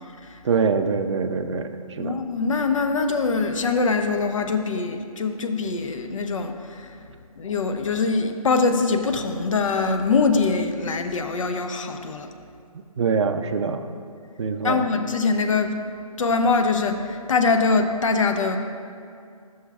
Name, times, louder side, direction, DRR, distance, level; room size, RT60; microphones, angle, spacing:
voice 1, 0.4-2.1 13.0-13.8 14.4-14.8, right 5 dB, 50° right, 8 dB, 0.4 m, -24 dB
voice 2, 2.0-7.1 7.4-12.3 14.6-15.8 16.2-18.6, left 4 dB, 60° left, 6 dB, 0.6 m, -23 dB
11.0 x 6.3 x 2.3 m, 2.3 s
figure-of-eight pair, 140°, 19 cm